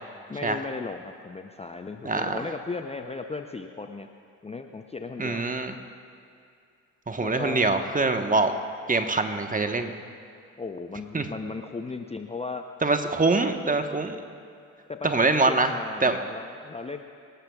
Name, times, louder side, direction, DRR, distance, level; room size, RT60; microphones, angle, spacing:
voice 1, 0.3-4.1 4.4-5.4 7.2-7.6 10.6-12.6 14.9-17.0, left 4 dB, 15° left, 5 dB, 0.7 m, -36 dB
voice 2, 2.0-2.4 5.2-5.8 7.1-8.5 8.9-9.9 11.1-11.3 12.8-14.2 15.0-15.7 16.0-16.2, right 3 dB, 20° right, 6 dB, 1.3 m, -24 dB
26.5 x 12.5 x 2.4 m, 2.4 s
hypercardioid pair, 50°, 40 cm